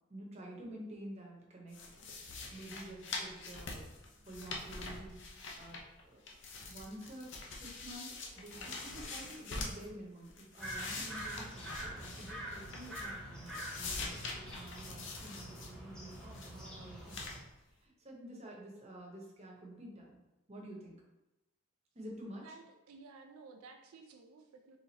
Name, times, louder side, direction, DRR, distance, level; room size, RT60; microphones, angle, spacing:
voice 1, 0.1-3.9 4.1-5.8 6.1-6.2 6.7-17.2 17.7-20.2 20.5-20.9 21.9-22.5, right 1 dB, 30° right, -2 dB, 0.9 m, -50 dB
sound 1, 1.7-6.0 6.3-9.9 10.3-13.2 13.5-15.7 16.1-16.6 17.1-17.4, left 3 dB, 60° left, 0.7 m, -44 dB
sound 2, 10.6-17.4, right 1 dB, 5° left, 0.8 m, -46 dB
voice 2, 22.4-24.8, right 4 dB, 85° right, 4 dB, 0.4 m, -54 dB
4.2 x 3.6 x 2.9 m, 0.97 s
head